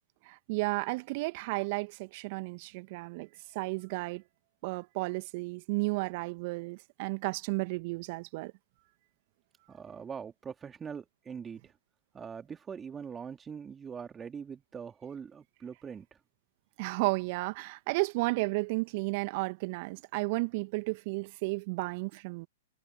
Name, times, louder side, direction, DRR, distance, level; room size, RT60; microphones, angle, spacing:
voice 1, 0.3-4.2 4.6-8.5 16.8-22.5, right 26 dB, 45° right, 2.0 m, -33 dB
voice 2, 9.7-11.7 12.1-16.1, right 6 dB, 15° right, 2.9 m, -42 dB
figure-of-eight pair, 110°, 0 cm